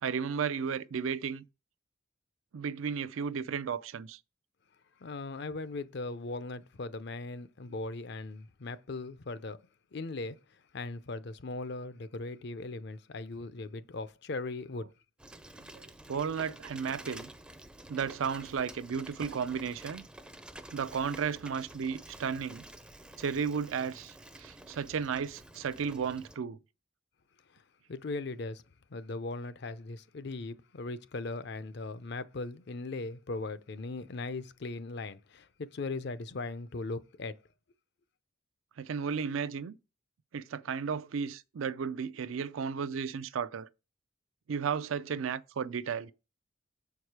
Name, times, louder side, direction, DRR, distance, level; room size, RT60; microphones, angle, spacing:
voice 1, 0.0-1.4 2.5-4.2 15.7-17.3 17.9-20.0 20.7-22.7 23.2-26.6 38.8-39.8 40.3-43.7 44.5-46.1, right 6 dB, 80° right, 0.4 m, -34 dB
voice 2, 5.0-9.6 9.9-10.4 10.7-14.9 27.9-28.6 28.9-37.4, left 3 dB, 55° left, 0.5 m, -39 dB
Bicycle, 15.2-26.4, right 1 dB, 5° right, 0.4 m, -50 dB
7.2 x 4.7 x 4.7 m
head